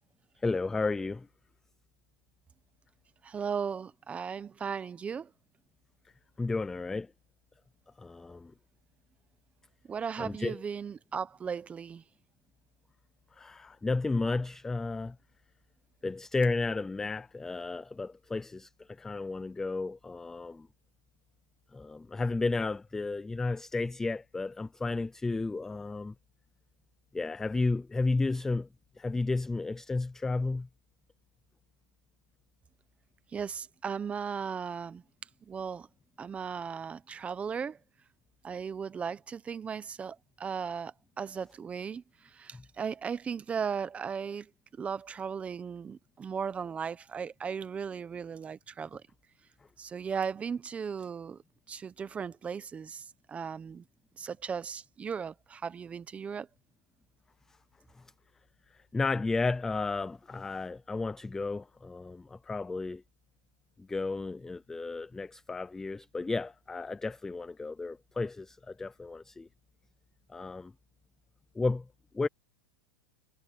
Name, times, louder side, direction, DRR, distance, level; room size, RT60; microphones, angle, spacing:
voice 1, 0.4-1.3 6.4-7.1 8.0-8.5 10.2-10.6 13.4-15.2 16.0-18.7 19.0-20.7 21.7-26.1 27.1-28.7 29.0-30.7 42.5-42.6 58.9-63.0 63.9-69.5 70.3-70.7 71.6-71.8 72.1-72.3, left 3 dB, 5° left, 0.3 m, -32 dB
voice 2, 3.2-5.3 9.9-12.0 33.3-35.0 35.5-35.9 36.2-37.8 38.4-44.5 44.8-49.0 49.8-51.4 51.7-53.8 54.2-56.5, right 6 dB, 10° right, 0.8 m, -36 dB
supercardioid pair, 160°, 10 cm